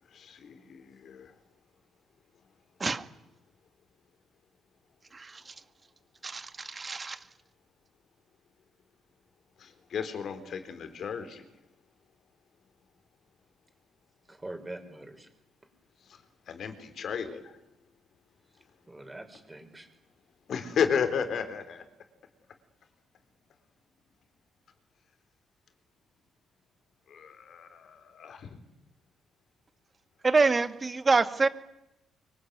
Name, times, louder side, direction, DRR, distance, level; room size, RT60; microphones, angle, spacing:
voice 1, 0.0-1.4 9.6-11.5 16.0-17.6 20.5-21.9 27.1-28.6, left 7 dB, 60° left, 9 dB, 4.3 m, -34 dB
voice 2, 5.1-5.6 6.2-7.3 30.2-31.5, right 4 dB, 30° right, 11 dB, 2.1 m, -26 dB
voice 3, 14.3-15.3 18.5-19.9, right 1 dB, 15° right, 5 dB, 5.9 m, -44 dB
24.5 x 24.0 x 9.6 m, 0.89 s
cardioid pair, 90°, 0 cm